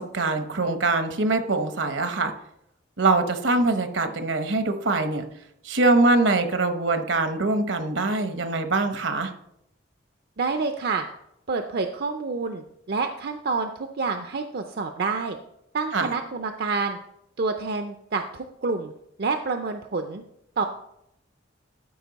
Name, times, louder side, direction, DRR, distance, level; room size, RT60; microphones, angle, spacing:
voice 1, 0.0-2.3 3.0-5.3 5.6-9.3 15.9-16.1, right 3 dB, 75° right, 8 dB, 1.0 m, -23 dB
voice 2, 10.4-11.1 11.5-15.4 15.7-17.0 17.4-18.9 19.2-20.2 20.6-20.7, right 4 dB, 55° right, 6 dB, 0.5 m, -28 dB
12.5 x 5.1 x 4.0 m, 0.79 s
head